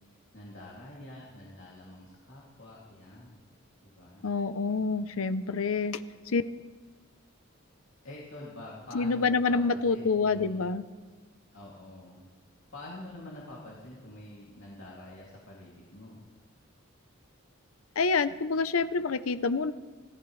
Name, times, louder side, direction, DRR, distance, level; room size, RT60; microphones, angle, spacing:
voice 1, 0.3-3.4 3.8-4.3 8.0-10.7 11.5-12.3 12.7-16.3, left 1 dB, 65° left, -5 dB, 2.6 m, -46 dB
voice 2, 4.2-6.0 6.3-6.4 8.9-10.8 18.0-19.7, left 4 dB, 85° left, 14 dB, 0.6 m, -27 dB
25.0 x 16.0 x 3.2 m, 1.4 s
head